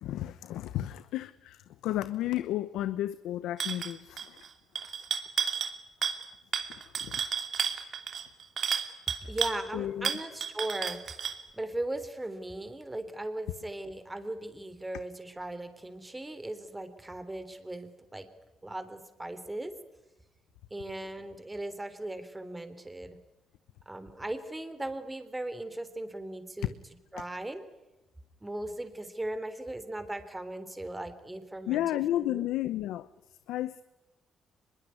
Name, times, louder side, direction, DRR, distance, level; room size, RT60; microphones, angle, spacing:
voice 1, 0.0-4.4 7.0-7.2 9.7-10.1 31.7-33.1 33.5-33.8, left 13 dB, 90° left, 0.9 m, -32 dB
sound 1, 3.6-3.9 4.2-4.5 4.7-5.7 6.0-6.3 6.5-9.6 10.0-11.4, right 7 dB, 55° right, 2.8 m, -32 dB
voice 2, 9.3-11.0 11.5-18.3 18.6-19.7 20.7-23.2 23.9-26.7 27.1-27.6 28.4-32.5, right 1 dB, 15° right, 3.6 m, -38 dB
24.5 x 22.0 x 9.7 m
cardioid pair, 90°, 0 cm